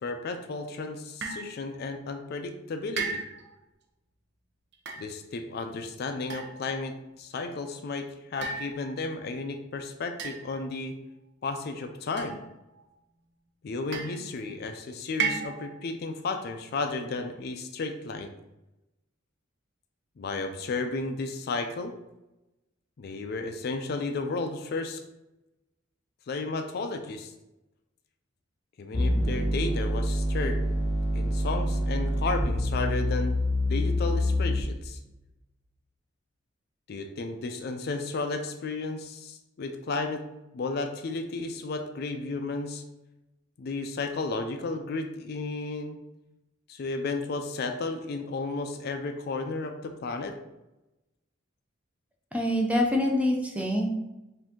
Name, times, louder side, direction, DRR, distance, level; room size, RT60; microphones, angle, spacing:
voice 1, 0.0-3.2 5.0-11.0 11.4-12.4 13.6-18.3 20.2-21.9 23.0-25.0 26.3-27.3 28.8-30.6 31.1-33.4 33.7-35.0 36.9-40.2 40.5-42.8 43.6-46.0 46.7-50.4, left 3 dB, 50° left, 6 dB, 0.4 m, -33 dB
sound 1, 1.2-1.6 3.0-3.5 4.7-5.1 6.3-6.9 8.4-9.2 10.2-10.8 12.2-12.8 13.9-14.4 15.2-15.8, right 5 dB, 60° right, 0.6 m, -34 dB
sound 2, 28.9-34.9, left 1 dB, 30° left, 1.0 m, -26 dB
voice 2, 52.3-53.9, left 1 dB, 5° right, 0 dB, 0.6 m, -25 dB
4.9 x 2.6 x 3.6 m, 0.96 s
head